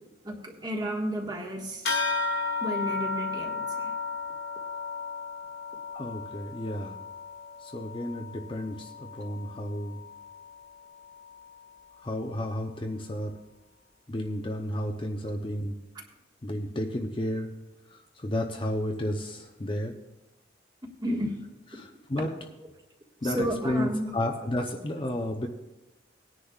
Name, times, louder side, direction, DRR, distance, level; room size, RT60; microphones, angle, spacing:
voice 1, 0.2-1.9 2.6-3.9 21.0-21.3 23.2-24.2, equal, 20° right, 0 dB, 1.6 m, -32 dB
sound 1, 1.8-11.7, left 4 dB, 60° left, 1.7 m, -35 dB
voice 2, 5.9-7.0 7.7-10.0 12.0-13.3 14.1-15.8 16.4-17.5 18.2-20.0 21.7-22.3 23.2-25.5, left 1 dB, 30° left, 2 dB, 0.7 m, -32 dB
19.0 x 10.0 x 2.4 m, 0.98 s
head